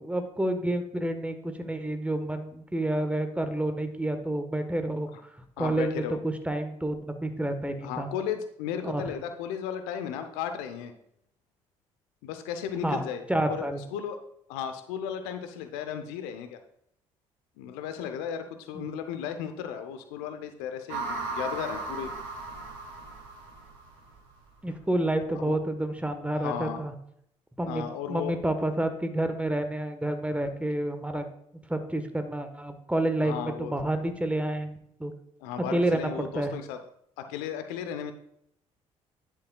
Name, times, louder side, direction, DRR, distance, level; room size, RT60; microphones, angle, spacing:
voice 1, 0.0-5.1 5.6-8.1 8.8-9.1 12.8-13.8 18.7-18.8 24.6-26.9 27.6-31.2 31.7-35.1 35.7-36.5, right 1 dB, 10° right, 7 dB, 1.3 m, -29 dB
voice 2, 5.6-6.2 7.8-10.9 12.2-13.2 13.5-13.7 13.9-14.2 14.5-16.6 17.6-22.1 25.3-25.6 26.3-26.8 27.7-28.3 33.2-33.8 35.4-36.8 37.2-38.1, left 8 dB, 70° left, 8 dB, 0.8 m, -35 dB
sound 1, 20.9-24.2, right 3 dB, 75° right, 1.8 m, -36 dB
10.5 x 8.5 x 2.4 m, 0.72 s
figure-of-eight pair, 50°, 16 cm